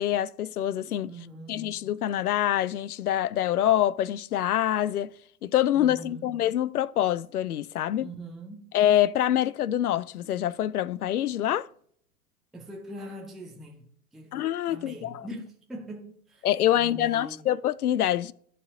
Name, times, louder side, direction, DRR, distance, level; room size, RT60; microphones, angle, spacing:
voice 1, 0.0-1.1 1.5-5.1 5.4-8.1 8.7-11.7 14.3-15.2 16.4-18.3, left 12 dB, 70° left, 0.5 m, -25 dB
voice 2, 1.1-1.7 5.7-6.4 8.0-8.8 12.5-14.3 14.7-17.5, right 1 dB, ahead, 0.4 m, -42 dB
13.0 x 4.6 x 3.6 m
figure-of-eight pair, 105°, 46 cm